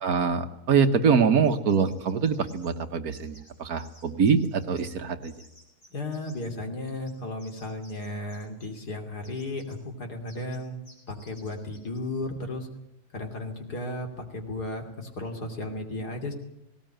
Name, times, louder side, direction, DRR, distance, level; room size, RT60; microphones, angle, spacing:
voice 1, 0.0-5.3, right 6 dB, 60° right, 8 dB, 1.6 m, -24 dB
sound 1, 1.4-2.7 3.1-3.5 3.8-5.0 5.2-6.5 6.9-8.9 9.2-9.8 10.3-10.6 10.8-12.0, left 1 dB, 30° left, 6.2 m, -55 dB
voice 2, 5.9-10.8 11.1-12.7 13.1-16.3, left 2 dB, 65° left, 4 dB, 3.4 m, -34 dB
18.5 x 18.5 x 9.0 m, 0.86 s
omnidirectional pair, 1.8 m